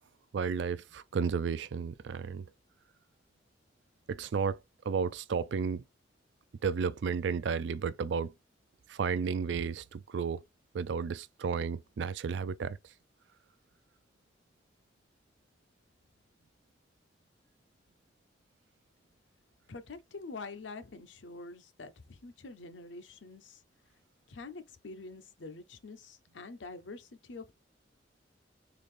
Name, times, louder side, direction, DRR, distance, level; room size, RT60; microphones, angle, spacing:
voice 1, 0.3-2.5 4.1-4.6 4.8-5.8 6.6-8.3 8.9-10.4 10.7-12.8, right 6 dB, 70° right, 0.4 m, -32 dB
voice 2, 19.7-23.6 24.3-27.5, left 3 dB, 80° left, 0.7 m, -46 dB
3.9 x 2.5 x 3.2 m
head